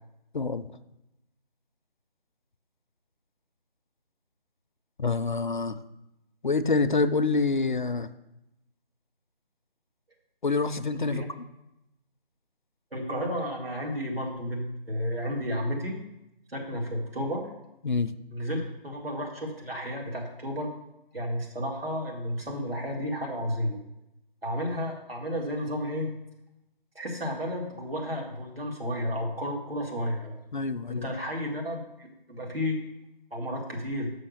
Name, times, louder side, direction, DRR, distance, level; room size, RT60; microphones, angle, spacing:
voice 1, 0.3-0.7 5.0-5.8 6.4-8.1 10.4-11.2 17.8-18.1 30.5-31.0, left 4 dB, 55° left, 11 dB, 0.4 m, -26 dB
voice 2, 12.9-16.0 16.5-17.5 18.3-20.7 21.1-23.8 24.4-26.1 27.0-30.4 30.9-32.8 33.3-34.1, equal, 75° right, -1 dB, 2.1 m, -32 dB
6.4 x 5.4 x 6.5 m, 0.90 s
figure-of-eight pair, 160°, 29 cm